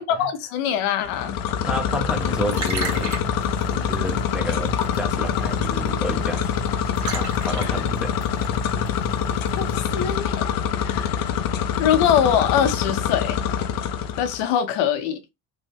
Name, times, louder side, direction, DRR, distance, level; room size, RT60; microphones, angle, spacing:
voice 1, 0.0-1.4 7.6-7.8 9.6-11.3 11.8-13.4 14.2-15.2, left 9 dB, 75° left, 0.8 m, -23 dB
sound 1, 1.0-14.4, left 8 dB, 45° left, 0.5 m, -25 dB
voice 2, 1.6-3.2 3.7-6.6 7.1-8.1, right 1 dB, ahead, 0.5 m, -30 dB
Liquid, 2.1-10.2, right 3 dB, 35° right, 1.2 m, -35 dB
3.0 x 2.2 x 3.3 m
supercardioid pair, 90°, 49 cm